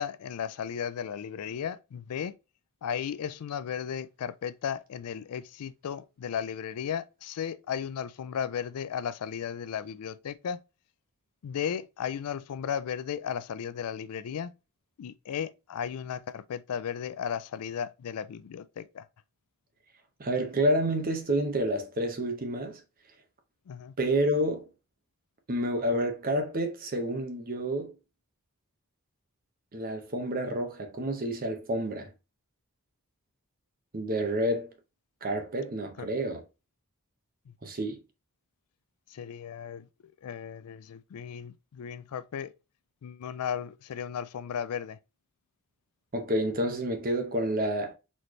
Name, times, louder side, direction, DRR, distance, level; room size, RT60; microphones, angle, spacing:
voice 1, 0.0-2.3 2.8-10.6 11.4-14.5 15.0-19.1 23.7-23.9 36.0-36.1 37.5-37.6 39.1-39.9 40.2-42.5 43.0-45.0, left 8 dB, 80° left, 0.4 m, -35 dB
voice 2, 20.2-22.8 24.0-24.7 25.5-27.9 29.7-32.1 33.9-34.7 35.2-36.4 37.6-38.0 46.1-47.9, right 1 dB, 40° right, 0.8 m, -29 dB
4.2 x 3.2 x 3.0 m
head